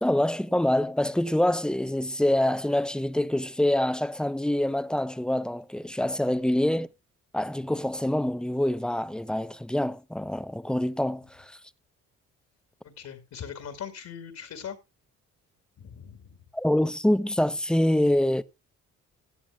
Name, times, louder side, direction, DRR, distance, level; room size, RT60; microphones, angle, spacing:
voice 1, 0.0-6.9 7.3-11.6 16.5-18.4, left 1 dB, 5° left, 0.6 m, -25 dB
voice 2, 12.8-14.8 15.8-16.4, left 8 dB, 65° left, 2.4 m, -40 dB
17.0 x 10.0 x 2.3 m
cardioid pair, 90°, 30 cm